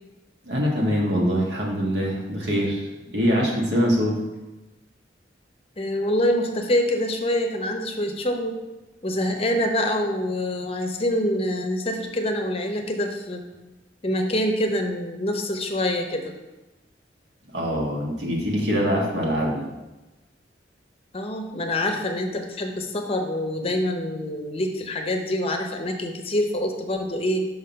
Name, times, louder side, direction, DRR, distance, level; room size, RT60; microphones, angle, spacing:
voice 1, 0.4-2.9 3.1-4.2 17.5-19.7, equal, 70° right, -2 dB, 1.5 m, -23 dB
voice 2, 5.8-8.6 9.0-13.4 14.0-16.2 21.1-27.5, left 1 dB, 35° left, 4 dB, 0.7 m, -25 dB
5.7 x 3.7 x 5.7 m, 1.1 s
head